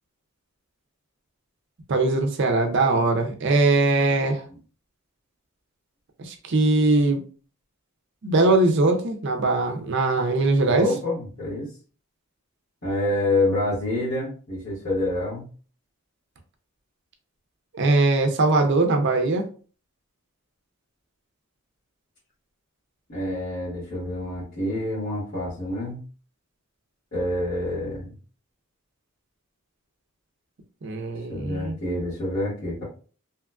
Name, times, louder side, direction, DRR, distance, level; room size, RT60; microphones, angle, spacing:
voice 1, 1.9-4.4 6.2-7.2 8.2-10.9 17.7-19.4 30.8-31.8, right 2 dB, 55° right, 5 dB, 0.5 m, -21 dB
voice 2, 10.6-11.7 12.8-15.5 23.1-26.0 27.1-28.1 31.3-32.8, left 1 dB, 50° left, -11 dB, 1.4 m, -27 dB
2.8 x 2.4 x 2.3 m, 0.39 s
head